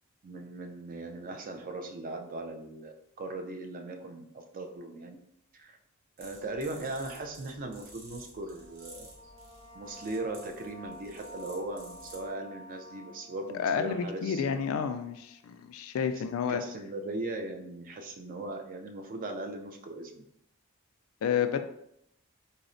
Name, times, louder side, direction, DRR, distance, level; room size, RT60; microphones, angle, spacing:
voice 1, 0.2-5.2 5.6-5.8 6.2-9.1 9.7-14.6 16.1-16.2 16.5-20.2, right 2 dB, 40° right, 4 dB, 0.4 m, -39 dB
sound 1, 6.2-12.3, right 1 dB, 65° right, 1.1 m, -53 dB
sound 2, 8.3-15.6, equal, 20° left, 0.5 m, -51 dB
voice 2, 13.5-16.6 21.2-21.6, left 7 dB, 70° left, 10 dB, 0.3 m, -30 dB
3.9 x 2.0 x 2.5 m, 0.76 s
head